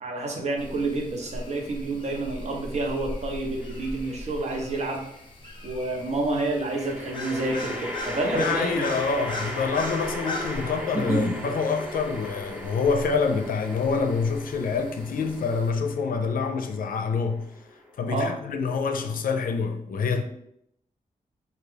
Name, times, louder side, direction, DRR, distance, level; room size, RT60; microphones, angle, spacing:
voice 1, 0.0-5.0 5.6-8.9 10.9-11.4 18.1-18.3, right 2 dB, 50° right, 0.9 m, -28 dB
sound 1, 0.6-15.7, left 2 dB, 35° left, 0.8 m, -40 dB
sound 2, 3.6-4.2 6.7-18.1, equal, 10° right, 0.8 m, -37 dB
voice 2, 8.3-17.5 18.0-20.2, left 5 dB, 80° left, 0.5 m, -26 dB
4.5 x 2.4 x 3.4 m
wide cardioid pair, 90°, 14 cm